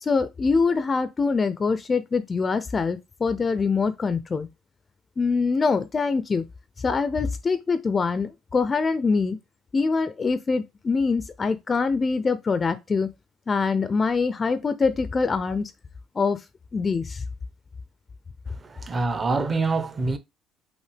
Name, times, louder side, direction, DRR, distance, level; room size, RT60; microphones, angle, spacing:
voice 1, 0.0-4.5 5.2-6.4 6.8-9.4 9.7-13.1 13.5-15.7 16.2-16.4 16.7-17.2, left 4 dB, 25° left, 0.4 m, -24 dB
voice 2, 18.5-20.2, right 3 dB, 25° right, 0.7 m, -26 dB
5.5 x 2.8 x 3.3 m
cardioid pair, 120°, 0 cm